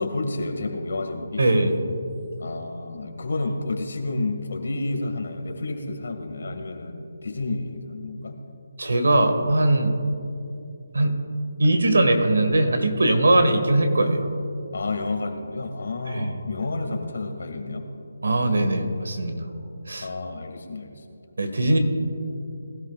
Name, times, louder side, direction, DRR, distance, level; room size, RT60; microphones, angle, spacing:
voice 1, 0.0-1.4 2.4-8.4 14.7-17.9 20.0-21.0, left 2 dB, 70° left, 4 dB, 2.0 m, -30 dB
voice 2, 1.4-1.7 8.8-10.0 10.9-11.2 11.6-14.3 16.1-16.4 18.2-19.5 19.9-20.1 21.4-21.8, right 1 dB, 80° right, 6 dB, 1.8 m, -20 dB
20.5 x 13.0 x 2.5 m, 2.6 s
hypercardioid pair, 165°, 0 cm